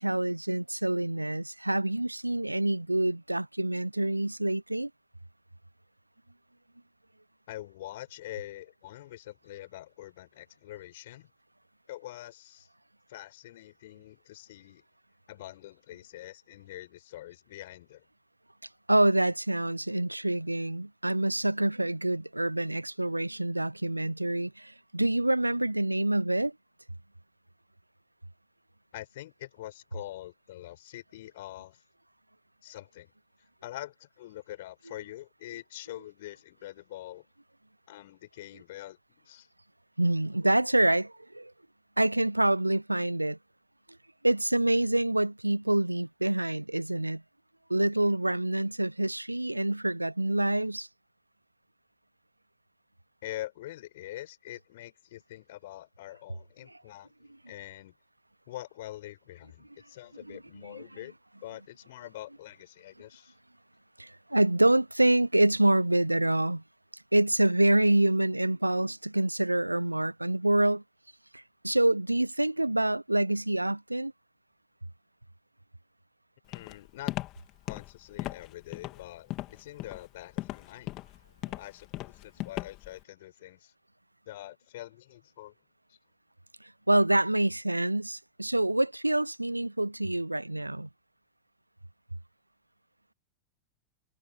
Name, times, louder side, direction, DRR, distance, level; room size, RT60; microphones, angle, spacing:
voice 1, 0.0-4.9 18.9-26.5 40.0-41.5 42.0-43.4 44.2-47.2 47.7-50.9 60.3-60.4 60.6-60.8 64.0-66.6 67.1-70.8 71.3-74.1 86.9-90.9, right 1 dB, 85° right, 0.3 m, -26 dB
voice 2, 7.5-11.3 11.9-12.7 13.1-14.8 15.3-18.1 28.9-31.8 32.6-33.1 33.6-37.3 37.9-39.5 53.2-57.1 57.5-57.9 58.5-61.2 61.4-63.3 76.5-77.1 77.7-81.0 81.6-83.7 84.3-85.5 85.9-86.0, left 15 dB, 55° left, 5.5 m, -44 dB
Walk footsteps, 76.5-83.0, left 17 dB, 35° left, 3.3 m, -37 dB
figure-of-eight pair, 90°, 0 cm